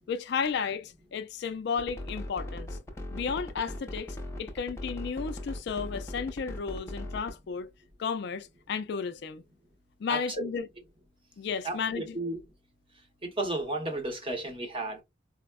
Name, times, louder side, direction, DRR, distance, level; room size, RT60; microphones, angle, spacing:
voice 1, 0.1-2.8 3.1-7.7 8.0-9.4 10.0-10.7 11.4-12.2, left 6 dB, 60° left, 0.3 m, -33 dB
sound 1, 1.8-7.4, left 1 dB, 15° left, 0.6 m, -38 dB
voice 2, 10.1-10.5 11.6-12.4 13.2-15.0, right 2 dB, 30° right, 0.8 m, -33 dB
4.3 x 2.0 x 2.2 m
head